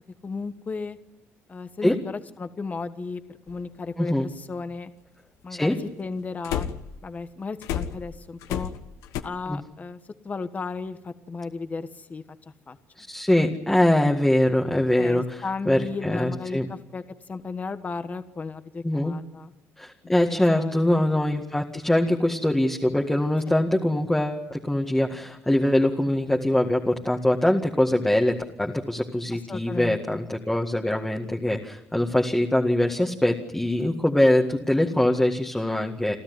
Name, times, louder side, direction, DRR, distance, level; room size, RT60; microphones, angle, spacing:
voice 1, 0.2-1.0 1.5-3.2 3.5-4.9 5.4-6.7 7.0-8.7 9.2-12.2 12.7-12.8 15.0-17.0 17.3-19.5 20.0-20.9 29.3-30.2, left 4 dB, 30° left, 10 dB, 1.3 m, -34 dB
sound 1, 3.5-3.6 6.4-7.0 7.6-9.2, left 10 dB, 90° left, 1.3 m, -30 dB
voice 2, 4.0-4.3 5.5-5.8 9.5-9.6 13.0-16.7 18.8-19.1 19.8-36.1, left 1 dB, 5° left, 1 dB, 1.9 m, -23 dB
29.0 x 13.0 x 9.7 m, 0.95 s
cardioid pair, 100°, 5 cm